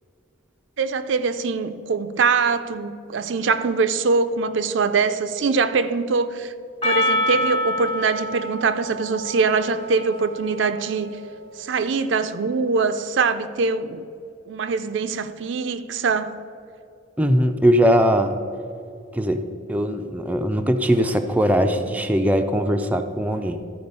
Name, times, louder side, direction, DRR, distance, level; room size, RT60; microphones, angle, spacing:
voice 1, 0.8-6.5 6.8-11.1 11.6-14.0 14.5-16.4, right 4 dB, 65° right, 11 dB, 0.4 m, -23 dB
Percussion, 6.8-11.4, left 1 dB, 30° left, 0.7 m, -27 dB
voice 2, 17.2-18.3 19.1-19.4 19.7-23.6, equal, 10° right, 5 dB, 0.4 m, -20 dB
13.0 x 4.7 x 5.3 m, 2.5 s
head